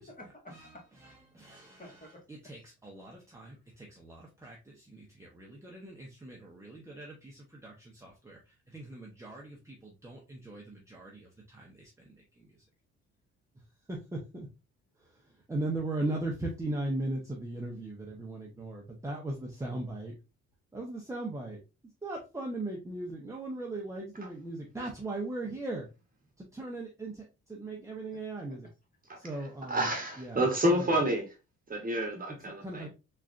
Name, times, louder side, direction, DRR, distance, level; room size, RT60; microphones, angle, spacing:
voice 1, 0.0-1.1 1.5-2.5 28.1-28.4, left 1 dB, 30° left, 0 dB, 1.6 m, -52 dB
voice 2, 1.0-2.0 2.3-12.5 13.9-14.5 15.0-15.2 15.5-20.1 20.7-21.6 22.0-25.9 26.4-28.7 29.2-29.9 30.2-30.8 32.5-32.9, right 2 dB, 10° right, -2 dB, 0.8 m, -39 dB
voice 3, 29.1-31.4 31.7-32.9, right 1 dB, 30° right, 2 dB, 1.2 m, -30 dB
3.6 x 3.2 x 2.5 m, 0.28 s
cardioid pair, 90°, 30 cm